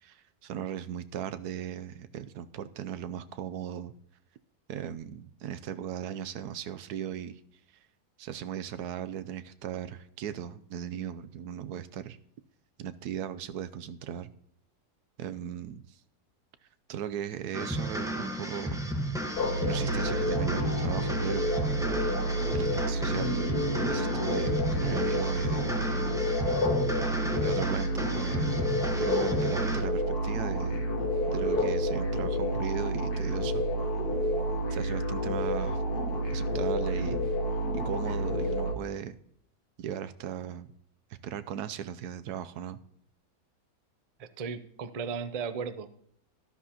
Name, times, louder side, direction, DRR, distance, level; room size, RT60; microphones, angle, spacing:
voice 1, 0.0-3.9 4.7-7.4 8.2-12.2 12.8-14.3 15.2-15.8 16.9-18.8 19.6-21.5 22.5-25.7 27.4-30.8 31.3-33.6 34.7-35.8 36.3-37.3 37.7-39.2 39.8-40.7 41.2-42.8, right 9 dB, 80° right, 13 dB, 1.2 m, -37 dB
sound 1, 17.5-29.8, right 1 dB, ahead, 1.1 m, -33 dB
sound 2, 19.4-38.7, equal, 75° left, 2.2 m, -29 dB
voice 2, 44.2-45.9, right 6 dB, 50° right, 12 dB, 0.4 m, -35 dB
12.5 x 12.0 x 2.9 m, 0.69 s
omnidirectional pair, 1.7 m